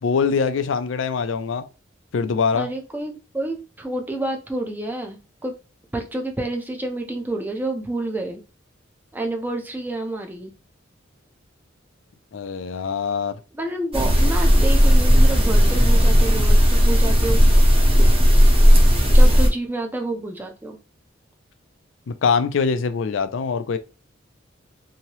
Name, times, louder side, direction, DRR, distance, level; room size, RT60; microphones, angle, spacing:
voice 1, 0.0-1.6 2.1-2.7 12.3-13.4 22.1-23.8, left 5 dB, 75° left, 0.4 m, -23 dB
voice 2, 2.5-5.5 5.9-8.4 9.1-10.5 13.5-17.4 19.1-20.8, right 2 dB, 10° right, 0.6 m, -29 dB
sound 1, 13.9-19.5, equal, 30° right, 1.0 m, -14 dB
3.0 x 2.7 x 2.9 m
head